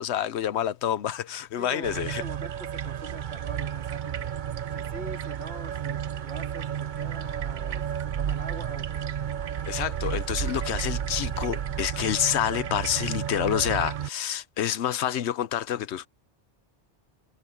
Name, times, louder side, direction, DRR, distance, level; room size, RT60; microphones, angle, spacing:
voice 1, 0.0-2.2 9.7-16.1, left 10 dB, 75° left, 0.9 m, -28 dB
voice 2, 1.6-4.4 4.7-7.8 8.2-9.1, right 3 dB, 70° right, 2.6 m, -43 dB
sound 1, 1.8-14.1, right 9 dB, 55° right, 0.6 m, -32 dB
omnidirectional pair, 1.2 m